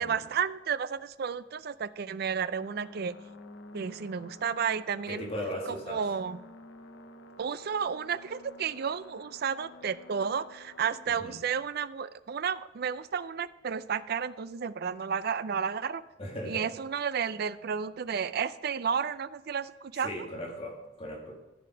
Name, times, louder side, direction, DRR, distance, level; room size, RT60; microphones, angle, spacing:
voice 1, 0.0-3.2 3.7-5.3 5.7-6.4 7.4-16.0 16.5-20.1, right 7 dB, 50° right, 16 dB, 0.4 m, -32 dB
Racing Car, 2.6-11.1, left 2 dB, 70° left, 0.8 m, -51 dB
voice 2, 5.1-6.0 11.1-11.4 16.2-16.7 20.0-21.3, equal, 30° left, -1 dB, 1.8 m, -38 dB
14.0 x 5.2 x 5.8 m, 1.0 s
head